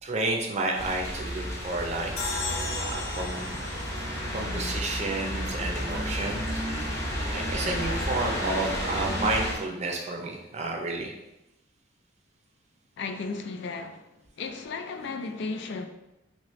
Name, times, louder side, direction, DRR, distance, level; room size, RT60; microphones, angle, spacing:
voice 1, 0.0-2.1 2.8-3.7 4.3-6.9 7.3-11.1, right 2 dB, 35° right, 0.5 m, -31 dB
sound 1, 0.7-9.5, equal, 15° left, 0.9 m, -32 dB
sound 2, 1.1-5.7, right 1 dB, 85° right, 0.5 m, -41 dB
sound 3, 2.2-5.5, left 3 dB, 85° left, 0.8 m, -36 dB
voice 2, 13.0-14.0 14.4-15.9, left 4 dB, 65° left, 0.3 m, -34 dB
3.1 x 2.8 x 3.0 m
head